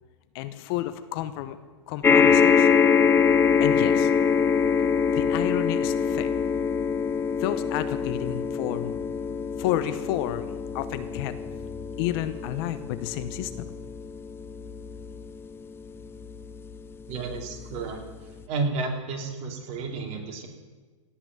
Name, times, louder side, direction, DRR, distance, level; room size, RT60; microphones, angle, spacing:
voice 1, 0.3-1.6 1.9-2.7 3.6-4.1 5.1-6.3 7.4-9.0 9.6-11.3 12.0-13.7, left 13 dB, 45° left, 12 dB, 0.9 m, -30 dB
sound 1, 2.0-16.6 17.3-17.4 17.7-17.8, left 6 dB, 15° left, 0.6 m, -24 dB
voice 2, 17.1-18.0 18.5-20.5, right 3 dB, 40° right, 2 dB, 2.8 m, -31 dB
17.5 x 6.0 x 8.9 m, 1.3 s
hypercardioid pair, 125°, 17 cm